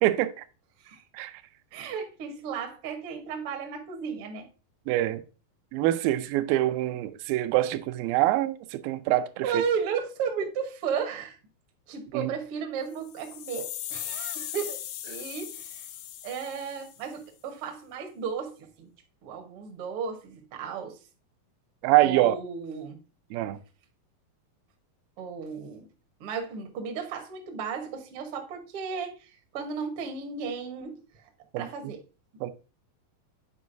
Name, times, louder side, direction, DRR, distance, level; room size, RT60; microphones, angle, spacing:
voice 1, 0.0-0.4 1.1-1.3 4.9-5.2 5.7-9.6 12.1-12.3 21.8-22.4 23.3-23.6 31.5-31.7 32.4-32.5, right 15 dB, 85° right, 2.3 m, -25 dB
voice 2, 1.7-4.5 9.4-11.4 11.9-15.9 16.2-18.9 19.2-21.0 22.0-23.0 25.2-25.9 26.2-31.3 31.6-32.0, right 6 dB, 70° right, 1.3 m, -34 dB
sound 1, 12.9-17.1, left 12 dB, 80° left, 2.0 m, -38 dB
8.3 x 4.6 x 2.5 m
omnidirectional pair, 4.1 m